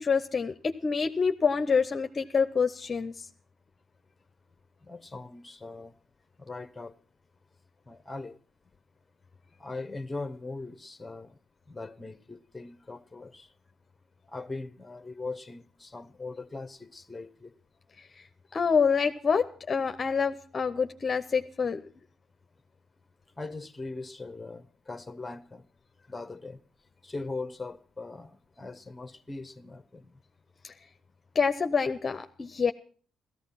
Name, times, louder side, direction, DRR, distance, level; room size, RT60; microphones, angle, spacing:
voice 1, 0.0-3.3 18.5-21.8 30.6-30.7 31.3-32.7, left 5 dB, 40° left, 0.7 m, -27 dB
voice 2, 4.8-5.9 6.4-6.9 7.9-8.4 9.6-11.4 11.7-13.5 14.3-17.5 23.4-25.6 26.1-26.6 27.0-30.1, left 3 dB, 15° left, 1.1 m, -40 dB
15.5 x 14.0 x 5.8 m
cardioid pair, 90°, 0 cm